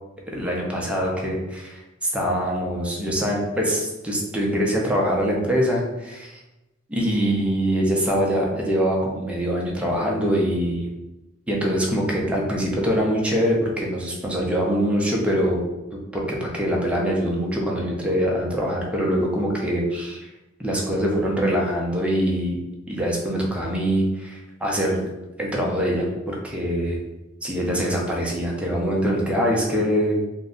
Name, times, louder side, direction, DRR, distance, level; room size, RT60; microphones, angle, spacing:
voice 1, 0.3-6.4 6.9-10.9 11.5-15.6 16.1-20.2 20.6-22.6 22.9-25.1 25.4-27.0 27.4-30.2, equal, 5° right, -2 dB, 0.6 m, -23 dB
2.5 x 2.1 x 3.6 m, 0.98 s
head